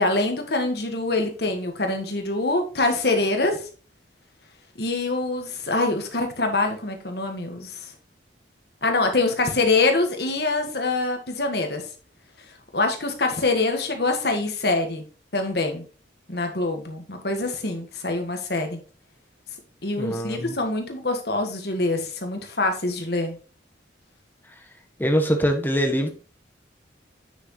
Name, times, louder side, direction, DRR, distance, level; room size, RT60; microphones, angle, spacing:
voice 1, 0.0-3.6 4.8-7.9 8.8-11.8 12.7-15.0 15.3-15.8 16.3-18.8 19.8-23.4, left 2 dB, 60° left, 4 dB, 1.6 m, -24 dB
voice 2, 20.0-20.6 25.0-26.1, equal, 10° left, 4 dB, 1.1 m, -23 dB
9.2 x 6.1 x 3.1 m, 0.37 s
head